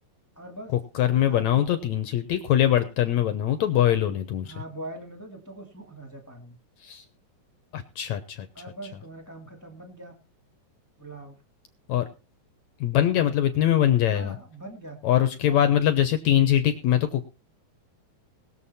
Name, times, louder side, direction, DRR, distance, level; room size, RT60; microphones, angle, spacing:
voice 1, 0.3-0.7 1.3-2.0 4.5-6.6 8.5-10.1 11.0-11.4 14.1-15.0 15.2-15.8, right 1 dB, 10° left, 3 dB, 0.8 m, -42 dB
voice 2, 1.0-4.5 6.8-7.1 7.7-8.5 11.9-12.1 12.8-14.4 15.0-17.2, left 11 dB, 75° left, 9 dB, 1.8 m, -22 dB
20.5 x 7.3 x 4.2 m, 0.32 s
omnidirectional pair, 4.3 m